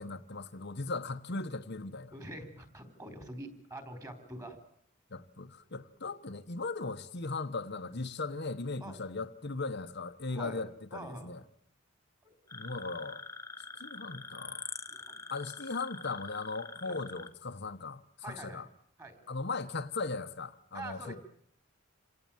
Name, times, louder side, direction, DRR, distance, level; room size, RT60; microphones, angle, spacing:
voice 1, 0.0-2.1 5.1-11.4 12.5-13.2 13.8-14.7 15.3-18.0 18.3-18.7 19.3-21.1, left 3 dB, 50° left, 1.2 m, -38 dB
voice 2, 2.1-4.6 8.8-9.0 10.3-10.6 10.9-11.3 12.2-12.3 12.7-12.8 14.9-15.2 16.8-17.0 18.2-18.7 19.0-19.2 20.7-21.2, right 1 dB, 15° right, 4.3 m, -45 dB
sound 1, 12.5-17.3, left 4 dB, 15° left, 1.1 m, -45 dB
27.5 x 18.0 x 9.1 m
head